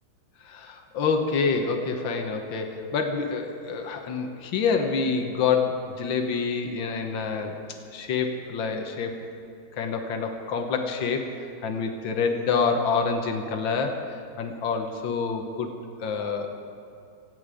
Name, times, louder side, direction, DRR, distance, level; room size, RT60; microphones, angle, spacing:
voice 1, 0.4-7.6 7.9-9.2 9.8-11.3 11.6-15.7 16.0-16.5, left 5 dB, 90° left, 4 dB, 1.9 m, -27 dB
25.5 x 9.5 x 5.1 m, 2.6 s
omnidirectional pair, 2.1 m